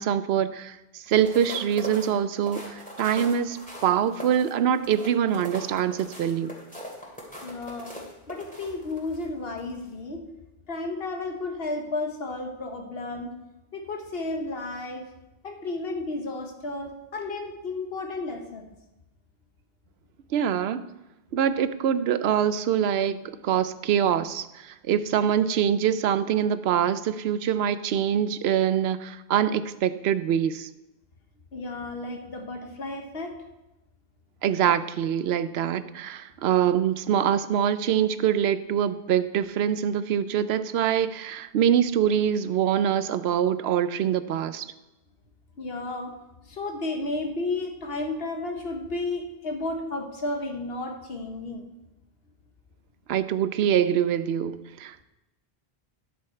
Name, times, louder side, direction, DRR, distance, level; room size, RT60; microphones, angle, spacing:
voice 1, 0.0-6.5 20.3-20.8 21.3-30.7 34.4-44.7 53.1-55.0, right 9 dB, 90° right, 13 dB, 0.8 m, -24 dB
sound 1, 1.0-9.2 9.7-9.9, equal, 10° left, 2.3 m, -41 dB
voice 2, 7.4-7.9 8.3-10.2 10.7-13.3 13.7-15.1 15.4-18.7 31.5-33.4 45.6-46.1 46.5-51.7, left 2 dB, 75° left, 4 dB, 1.3 m, -32 dB
10.5 x 7.1 x 4.4 m, 0.98 s
omnidirectional pair, 1.0 m